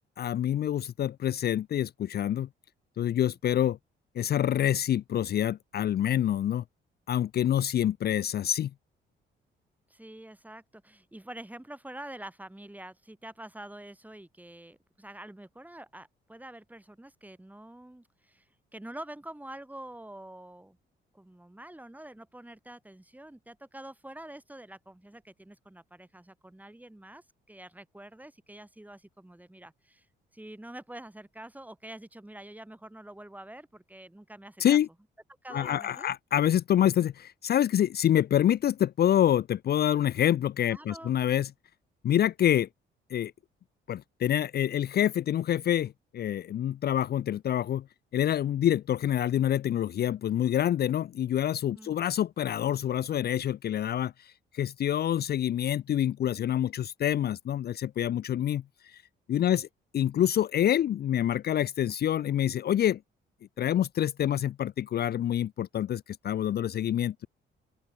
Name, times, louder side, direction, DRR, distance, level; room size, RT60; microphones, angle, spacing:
voice 1, 0.2-2.5 3.0-3.8 4.2-6.6 7.1-8.7 34.6-34.9 35.5-41.5 42.0-42.7 43.1-43.3 43.9-47.8 48.1-59.0 59.3-59.7 59.9-63.0 63.6-67.3, left 11 dB, 55° left, 0.6 m, -27 dB
voice 2, 9.9-18.5 18.7-20.8 21.1-30.1 30.3-34.8 35.4-36.1 40.7-41.2 51.7-52.0 59.5-59.6, right 1 dB, 10° right, 7.1 m, -46 dB
open air
cardioid pair, 90°, 20 cm